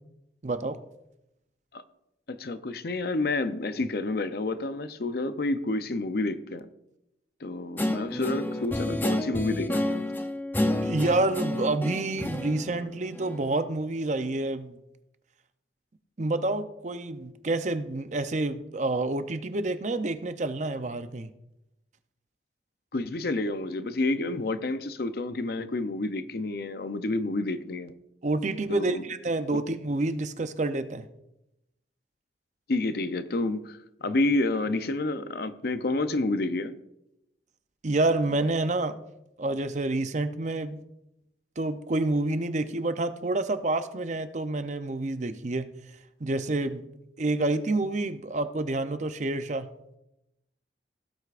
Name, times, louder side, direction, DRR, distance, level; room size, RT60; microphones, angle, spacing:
voice 1, 0.4-0.8 10.8-14.7 16.2-21.3 28.2-31.1 37.8-38.9 39.4-40.8 41.6-45.7 46.2-46.8 47.2-49.7, right 2 dB, 40° right, 0.6 m, -28 dB
voice 2, 2.3-6.7 7.4-10.0 22.9-27.9 28.7-29.0 29.5-29.6 32.7-36.7, left 2 dB, 55° left, 0.6 m, -29 dB
Guitar, 7.8-13.6, left 1 dB, 10° left, 0.6 m, -30 dB
17.0 x 8.1 x 2.5 m
head